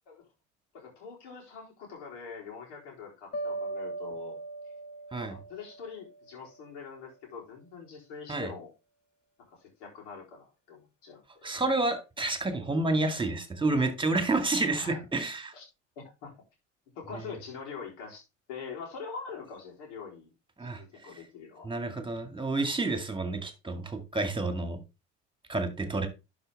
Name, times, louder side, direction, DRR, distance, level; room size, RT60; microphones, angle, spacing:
voice 1, 0.7-4.4 5.3-8.7 9.5-11.6 14.8-15.0 15.5-15.6 16.0-16.3 17.0-18.2 18.5-20.3 20.6-21.7, left 5 dB, 65° left, -2 dB, 3.9 m, -44 dB
sound 1, 3.3-6.4, right 2 dB, 40° left, 2.0 m, -39 dB
voice 2, 11.4-15.5 17.2-17.3 20.6-21.1 21.6-24.8 25.5-26.1, right 2 dB, 15° right, 7 dB, 2.2 m, -29 dB
11.5 x 5.0 x 3.6 m, 0.27 s
figure-of-eight pair, 65°, 37 cm